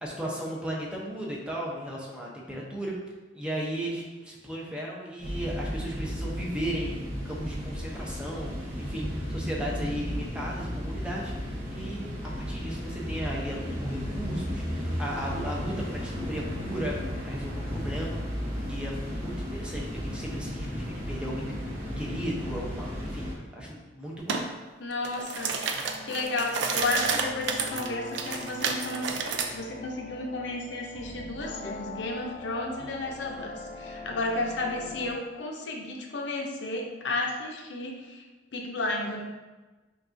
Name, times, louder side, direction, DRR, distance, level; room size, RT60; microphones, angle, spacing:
voice 1, 0.0-3.0 3.3-12.1 12.4-17.0 17.2-18.2 18.7-24.4, right 1 dB, 5° right, -4 dB, 0.7 m, -35 dB
sound 1, 5.2-23.3, equal, 45° right, 1.1 m, -34 dB
sound 2, 24.3-24.5 24.9-29.5, right 5 dB, 75° right, 0.4 m, -30 dB
voice 2, 24.8-25.6 26.0-38.2 38.5-39.2, left 2 dB, 75° left, 1 dB, 0.6 m, -32 dB
sound 3, 25.7-35.2, left 2 dB, 30° left, 0.3 m, -43 dB
5.3 x 2.4 x 2.6 m, 1.2 s
head